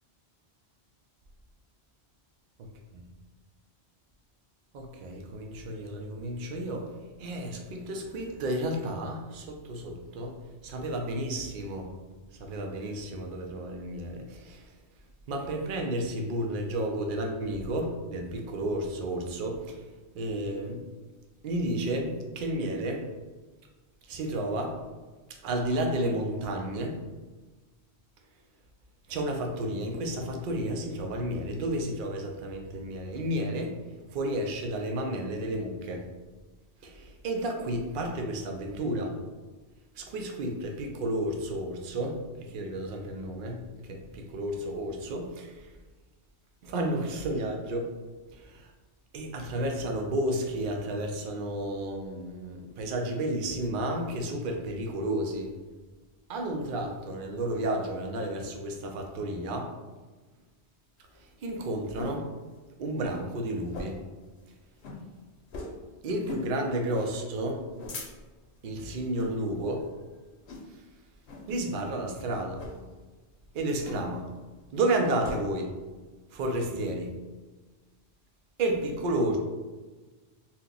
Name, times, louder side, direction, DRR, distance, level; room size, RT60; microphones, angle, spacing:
voice 1, 4.7-6.9 7.2-11.9 12.4-14.7 15.3-19.9 20.1-20.8 21.4-23.1 24.1-24.8 25.3-27.0 29.1-33.7 34.1-36.0 36.8-39.1 40.0-45.7 46.6-47.9 48.3-48.7 49.1-55.5 56.3-59.7 61.2-62.3 62.8-64.0 66.0-67.6 68.6-69.9 70.7-70.8 71.5-72.6 73.5-74.3 74.7-75.7 76.3-77.1 78.6-79.4, right 1 dB, 60° right, 2 dB, 0.6 m, -32 dB
sound 1, 61.0-62.2 62.6-62.7 63.0-63.2 63.7-64.1 64.4-64.5 64.8-65.0 65.5-65.8 66.2-66.5 66.9-67.1 67.6-68.4 69.1-69.4 69.8-70.0 70.5-70.9 71.3-71.5 72.5-72.8 73.8-74.3 74.6-75.4, left 3 dB, 75° left, 0.9 m, -40 dB
2.8 x 2.2 x 3.7 m, 1.3 s
omnidirectional pair, 1.1 m